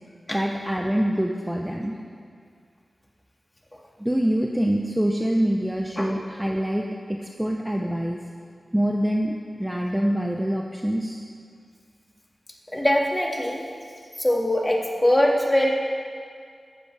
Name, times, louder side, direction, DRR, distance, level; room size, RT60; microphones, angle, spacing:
voice 1, 0.3-1.9 4.0-8.2 8.7-11.2, equal, 5° right, 1 dB, 0.7 m, -25 dB
voice 2, 12.7-13.6 14.2-15.7, left 1 dB, 15° left, -1 dB, 1.8 m, -21 dB
16.5 x 12.0 x 3.4 m, 2.2 s
wide cardioid pair, 100°, 0 cm